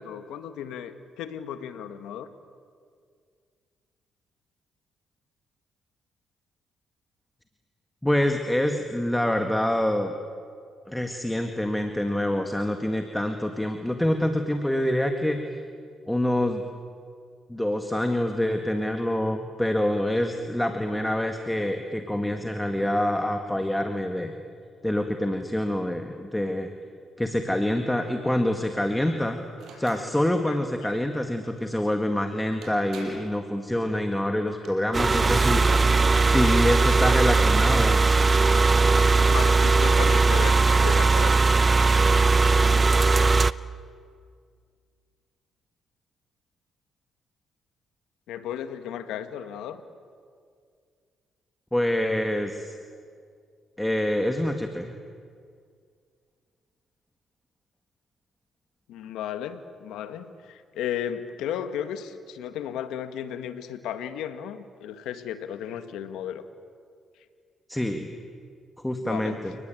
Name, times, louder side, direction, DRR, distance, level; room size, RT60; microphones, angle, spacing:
voice 1, 0.0-2.3 30.5-30.6 30.8-30.9 39.3-40.6 40.8-41.5 48.3-49.8 58.9-66.5 69.0-69.4, left 9 dB, 90° left, 9 dB, 1.8 m, -34 dB
voice 2, 8.0-10.1 10.9-15.4 16.1-16.6 17.5-24.4 24.8-26.7 27.2-29.4 29.8-35.8 36.3-38.0 51.7-52.8 53.8-54.9 67.7-68.1 68.8-69.6, left 1 dB, 5° left, 5 dB, 1.9 m, -26 dB
sound 1, 29.6-30.1 32.1-32.2 32.6-33.4 34.3-34.7, right 4 dB, 70° right, 6.4 m, -45 dB
sound 2, 34.9-43.5, right 3 dB, 30° right, 0.7 m, -19 dB
30.0 x 19.5 x 9.2 m, 2.2 s
cardioid pair, 90°, 0 cm